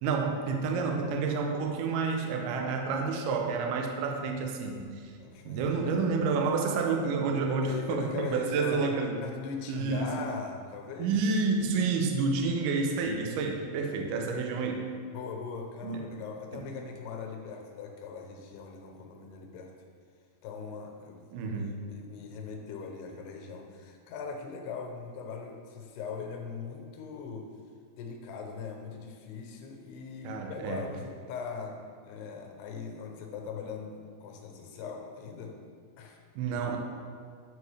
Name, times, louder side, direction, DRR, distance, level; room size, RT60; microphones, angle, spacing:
voice 1, 0.0-5.1 5.5-9.2 9.7-10.1 11.0-14.8 15.8-16.0 16.5-16.7 21.3-21.8 30.2-30.9 36.4-36.8, right 4 dB, 90° right, 3 dB, 1.8 m, -29 dB
voice 2, 5.2-6.1 7.7-8.9 9.2-11.1 15.1-19.7 20.4-27.5 28.0-31.8 32.0-35.5 36.0-36.2, left 5 dB, 85° left, 2 dB, 2.8 m, -40 dB
9.4 x 4.7 x 3.2 m, 2.1 s
omnidirectional pair, 4.6 m